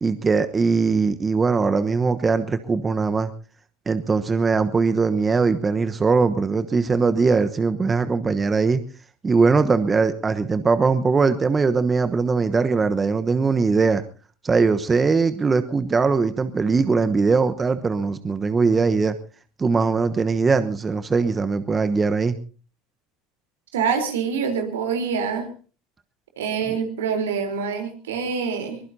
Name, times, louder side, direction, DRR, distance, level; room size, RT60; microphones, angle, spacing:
voice 1, 0.0-3.3 3.9-8.8 9.2-14.0 14.4-19.2 19.6-22.4, right 4 dB, 25° right, 10 dB, 1.1 m, -21 dB
voice 2, 23.7-25.5 26.4-28.8, right 6 dB, 80° right, 5 dB, 3.8 m, -25 dB
23.0 x 20.5 x 2.8 m, 0.38 s
hypercardioid pair, 75°, 0 cm